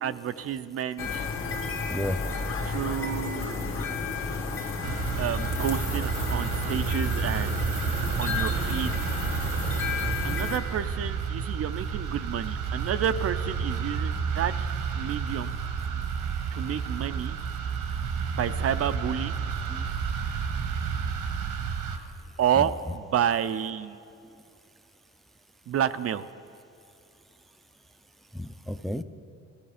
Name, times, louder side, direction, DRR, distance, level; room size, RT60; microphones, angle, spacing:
voice 1, 0.0-1.3 2.6-3.5 5.2-7.7 8.2-9.0 10.2-14.7 15.0-15.5 16.5-17.4 18.4-19.3 22.4-24.0 25.7-26.3, right 9 dB, 50° right, 12 dB, 0.5 m, -30 dB
sound 1, 1.0-10.6, left 4 dB, 45° left, 1.4 m, -32 dB
voice 2, 1.9-2.2 3.6-3.9 19.7-19.9 22.6-22.7 28.3-29.0, left 1 dB, ahead, 8 dB, 0.4 m, -33 dB
sound 2, 4.8-22.0, right 6 dB, 90° right, 1.3 m, -30 dB
15.5 x 14.0 x 5.0 m, 2.6 s
cardioid pair, 90°, 30 cm